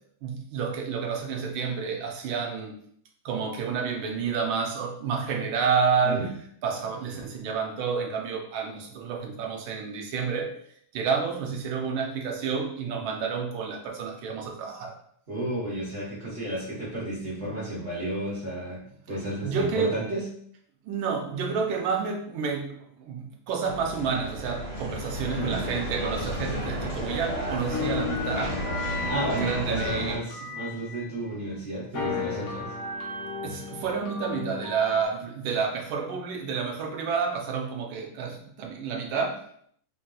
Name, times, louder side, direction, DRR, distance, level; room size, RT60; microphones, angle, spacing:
voice 1, 0.2-2.7 3.2-6.3 6.6-10.5 10.9-15.0 19.4-19.9 20.8-28.6 29.3-30.2 33.4-39.4, right 5 dB, 75° right, 1 dB, 1.3 m, -29 dB
voice 2, 15.3-20.3 25.2-25.7 29.0-32.7, right 1 dB, 45° right, -7 dB, 0.8 m, -33 dB
sound 1, 23.7-30.2, equal, 50° left, 1.6 m, -32 dB
sound 2, 27.7-31.5 31.9-35.0, left 5 dB, 70° left, 0.8 m, -34 dB
3.5 x 2.6 x 2.2 m, 0.64 s
omnidirectional pair, 2.4 m